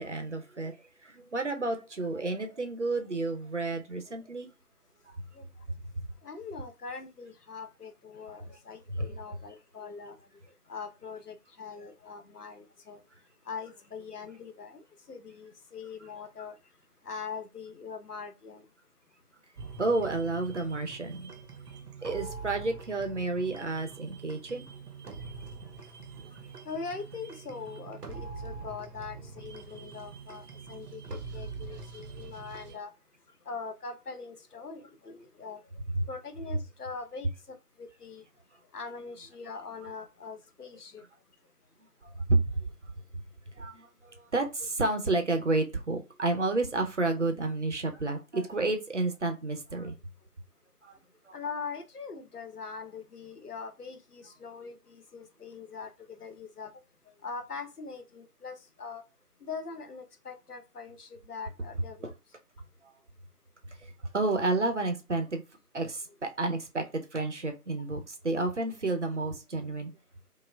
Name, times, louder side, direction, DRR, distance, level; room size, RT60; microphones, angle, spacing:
voice 1, 0.0-4.5 5.2-5.3 5.7-6.0 8.9-9.1 19.8-21.3 22.0-24.7 35.9-36.0 42.0-42.6 43.5-49.9 50.8-51.0 51.3-51.4 62.0-62.1 62.8-62.9 63.8-65.4 65.7-69.9, right 2 dB, 50° right, 0.6 m, -31 dB
voice 2, 6.2-10.2 10.7-13.0 13.4-16.6 17.0-18.7 26.6-32.9 33.4-35.6 36.1-38.2 38.7-41.0 51.3-56.7 57.2-59.0 59.4-62.1 67.9-68.0, left 5 dB, 75° left, 0.9 m, -42 dB
sound 1, 19.6-32.8, right 4 dB, 85° right, 0.8 m, -44 dB
5.0 x 2.1 x 2.2 m
figure-of-eight pair, 160°, 46 cm